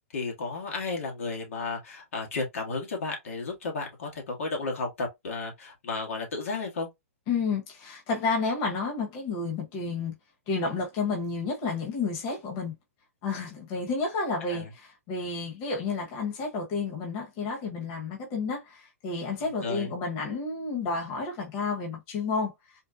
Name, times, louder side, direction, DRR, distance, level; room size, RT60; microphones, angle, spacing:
voice 1, 0.1-6.9 14.5-14.7 19.6-19.9, left 3 dB, 70° left, 1.6 m, -33 dB
voice 2, 7.3-10.1 10.5-12.7 13.2-22.5, left 4 dB, 40° left, 1.5 m, -31 dB
4.3 x 2.2 x 2.7 m
hypercardioid pair, 140°, 8 cm